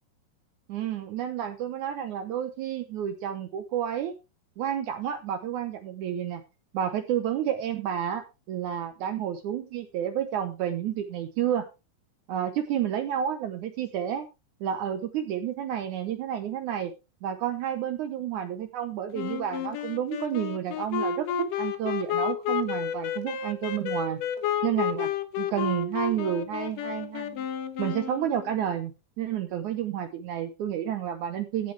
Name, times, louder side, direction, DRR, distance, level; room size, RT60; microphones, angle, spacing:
voice 1, 0.7-4.1 4.6-6.4 6.7-11.7 12.3-14.3 14.6-16.9 17.2-21.3 21.6-24.2 24.6-25.1 25.4-27.5 27.8-28.9 29.2-31.7, right 10 dB, 85° right, 8 dB, 1.7 m, -30 dB
Wind instrument woodwind instrument, 19.1-28.6, left 8 dB, 70° left, 2.2 m, -31 dB
16.0 x 7.9 x 3.3 m, 0.27 s
omnidirectional pair, 4.8 m